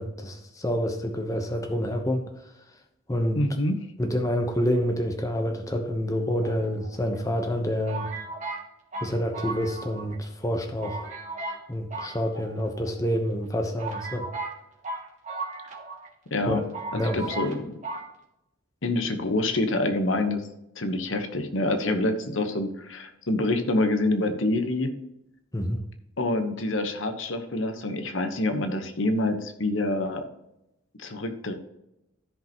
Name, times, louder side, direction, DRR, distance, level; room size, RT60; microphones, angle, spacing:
voice 1, 0.0-2.2 3.1-3.4 4.0-8.1 9.0-11.1 11.7-14.3 16.5-16.6 16.9-17.2 25.5-25.8, equal, 15° left, 4 dB, 0.9 m, -27 dB
voice 2, 3.3-3.8 16.3-16.6 16.9-17.8 18.8-20.5 20.8-24.9 26.2-30.2 31.0-31.5, left 2 dB, 80° left, 7 dB, 1.1 m, -26 dB
sound 1, 6.4-7.2 7.9-10.2 10.4-10.5 10.8-11.6 11.9-12.9 13.4-13.5 13.8-16.1 16.4-16.5 16.7-17.6 17.8-18.1, right 3 dB, 40° right, 1.8 m, -36 dB
14.0 x 5.1 x 3.0 m, 0.86 s
head